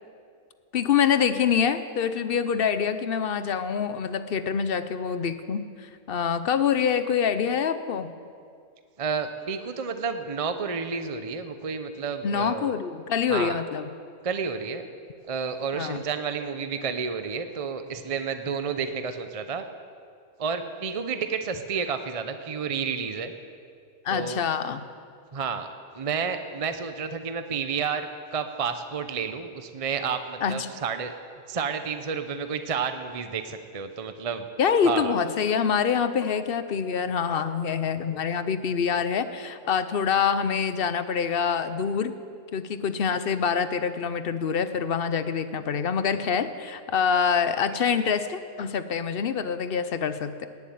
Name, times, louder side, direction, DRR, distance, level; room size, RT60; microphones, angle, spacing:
voice 1, 0.7-8.1 12.2-13.9 15.7-16.0 24.0-24.8 30.4-30.7 34.6-42.1 42.5-50.5, left 7 dB, 50° left, 11 dB, 0.8 m, -26 dB
voice 2, 9.0-12.7 13.3-13.6 14.2-14.9 15.3-19.6 20.4-23.3 24.1-24.4 25.3-25.7 25.9-31.1 31.5-34.5 34.8-35.1, right 6 dB, 35° right, 8 dB, 0.6 m, -30 dB
19.0 x 7.2 x 9.4 m, 2.2 s
omnidirectional pair, 1.5 m